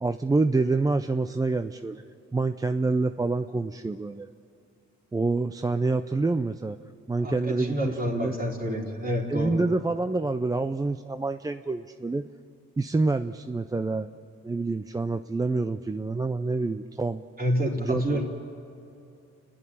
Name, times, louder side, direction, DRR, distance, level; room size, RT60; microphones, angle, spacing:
voice 1, 0.0-2.0 2.3-4.3 5.1-6.8 7.1-8.4 9.3-12.3 12.8-14.1 14.4-17.2 17.8-18.2, right 3 dB, 10° right, 9 dB, 0.5 m, -27 dB
voice 2, 7.2-9.6 17.4-18.3, equal, 30° right, 0 dB, 3.8 m, -28 dB
30.0 x 10.0 x 10.0 m, 2.7 s
cardioid pair, 90°, 30 cm